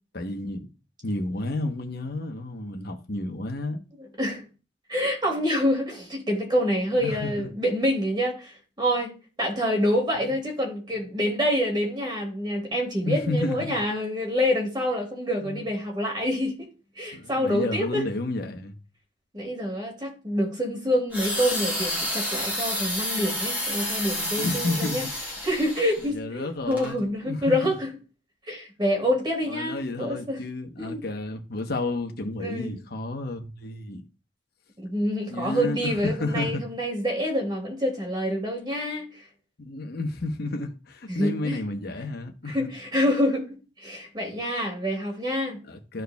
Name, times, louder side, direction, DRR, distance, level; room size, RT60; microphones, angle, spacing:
voice 1, 0.1-0.7 1.0-3.8 6.9-7.5 13.0-13.8 15.4-15.7 17.1-18.7 24.4-25.1 26.0-27.7 29.5-34.0 35.3-36.6 39.6-42.7 45.7-46.0, left 2 dB, 55° left, 1.0 m, -31 dB
voice 2, 4.9-8.5 8.8-9.1 9.4-16.7 17.0-18.0 19.3-25.1 25.4-27.9 28.5-30.4 30.8-31.0 32.4-32.7 34.8-39.1 41.1-41.6 42.5-45.6, equal, 25° right, 2.4 m, -27 dB
sound 1, 21.1-26.1 26.7-26.9, left 1 dB, 10° right, 1.8 m, -30 dB
13.0 x 4.6 x 2.3 m
head